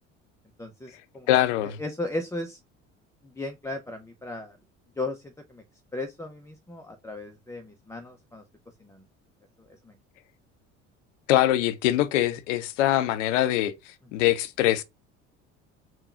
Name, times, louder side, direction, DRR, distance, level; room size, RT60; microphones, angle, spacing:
voice 1, 0.6-1.3 1.8-2.6 3.2-4.6 5.0-5.6 5.9-8.4 8.8-9.0 9.9-10.0, left 2 dB, 10° left, 0.6 m, -36 dB
voice 2, 1.3-1.8 11.3-13.7 14.1-14.8, left 13 dB, 75° left, 0.6 m, -23 dB
3.6 x 2.3 x 4.2 m
hypercardioid pair, 60°, 37 cm